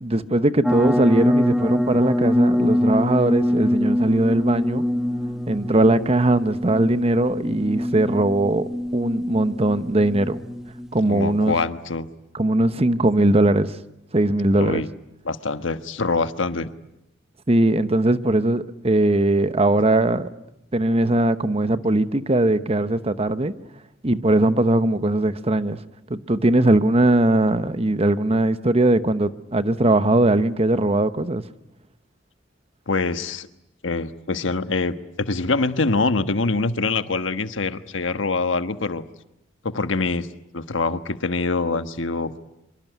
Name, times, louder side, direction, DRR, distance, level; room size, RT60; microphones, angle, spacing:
voice 1, 0.0-4.8 5.5-8.6 8.9-10.4 10.9-11.6 12.3-13.8 14.1-14.8 17.5-20.3 20.7-23.5 24.0-25.8 26.1-31.4, right 1 dB, 30° right, 1.0 m, -20 dB
sound 1, 0.6-11.6, left 1 dB, 5° right, 1.1 m, -24 dB
voice 2, 11.1-12.1 14.6-14.9 15.2-16.7 32.9-33.5 33.8-39.0 39.6-40.3 40.5-42.4, left 3 dB, 85° left, 1.3 m, -24 dB
25.5 x 24.0 x 9.2 m
head